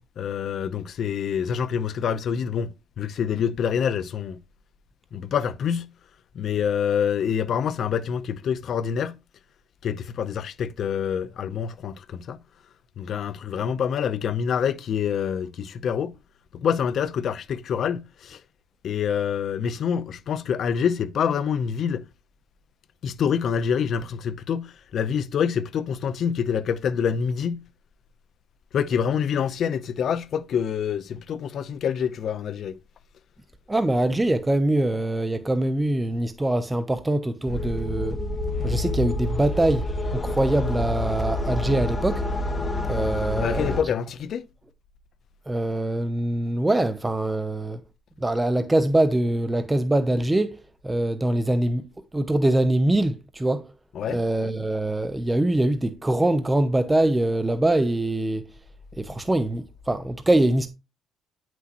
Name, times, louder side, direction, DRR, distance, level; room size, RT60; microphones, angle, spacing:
voice 1, 0.2-4.4 5.1-5.9 6.3-9.1 9.8-12.4 13.0-16.1 16.5-18.4 18.8-22.0 23.0-27.6 28.7-32.7 43.4-44.5 53.9-54.2, left 7 dB, 60° left, 0.7 m, -26 dB
voice 2, 33.7-38.2 38.6-42.3 42.9-43.8 45.5-47.8 48.2-51.8 52.1-53.7 54.0-58.5 59.0-60.7, right 1 dB, 15° right, 0.7 m, -23 dB
sound 1, 37.5-43.8, left 2 dB, 25° left, 1.4 m, -28 dB
9.3 x 6.1 x 3.0 m
cardioid pair, 105°, 0 cm